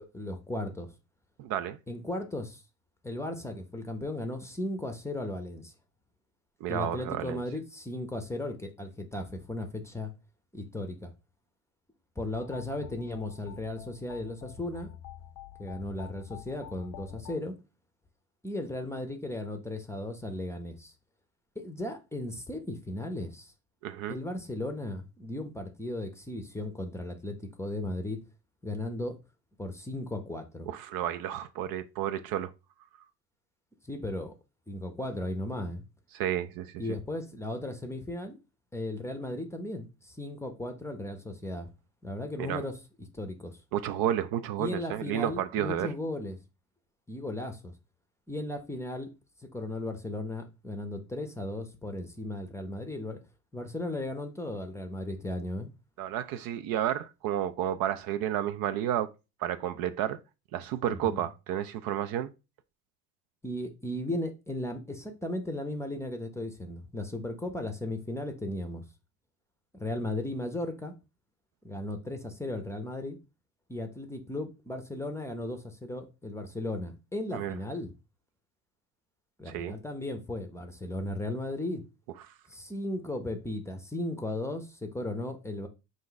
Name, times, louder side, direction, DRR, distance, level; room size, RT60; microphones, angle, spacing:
voice 1, 0.1-0.9 1.9-2.6 3.0-5.7 6.7-10.1 10.5-11.1 12.2-14.9 15.6-17.5 18.4-20.9 21.6-23.5 24.1-28.2 28.6-29.2 29.6-30.7 33.9-34.3 34.7-35.8 36.8-38.4 38.7-41.7 42.0-42.8 43.1-43.6 44.6-46.4 47.1-47.7 48.3-49.1 49.4-53.2 53.5-55.7 60.9-61.3 63.4-68.8 69.7-70.9 71.6-73.2 73.7-77.9 79.4-81.8 82.5-85.7, left 1 dB, 5° left, 0.6 m, -36 dB
voice 2, 1.4-1.8 6.6-7.4 23.8-24.2 30.7-32.5 36.1-36.8 42.4-42.6 43.7-45.9 56.0-59.1 59.4-60.2 60.5-62.3 77.3-77.5 79.5-79.7, right 11 dB, 60° right, 0.5 m, -31 dB
sound 1, 12.3-17.4, left 11 dB, 60° left, 0.5 m, -47 dB
4.3 x 2.6 x 3.9 m
supercardioid pair, 90°, 41 cm